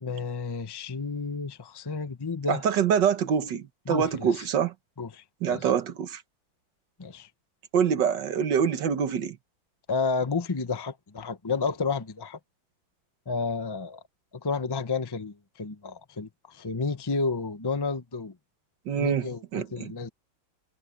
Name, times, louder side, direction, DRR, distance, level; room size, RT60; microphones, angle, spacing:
voice 1, 0.0-2.6 3.9-4.5 5.0-5.7 7.0-7.3 9.9-12.4 13.3-14.0 14.3-18.3 19.0-20.1, left 4 dB, 20° left, 0.7 m, -31 dB
voice 2, 2.5-4.7 5.4-6.2 7.7-9.4 18.9-19.3 19.5-19.9, right 7 dB, 70° right, 1.8 m, -25 dB
omnidirectional pair, 2.1 m